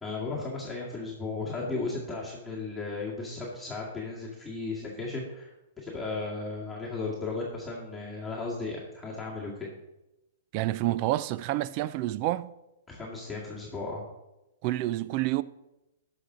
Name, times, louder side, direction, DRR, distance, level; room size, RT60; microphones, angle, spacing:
voice 1, 0.0-9.7 12.9-14.0, left 3 dB, 5° left, 2.0 m, -35 dB
voice 2, 10.5-12.5 14.6-15.4, right 16 dB, 45° right, 0.4 m, -28 dB
13.0 x 5.9 x 3.8 m
hypercardioid pair, 135°, 0 cm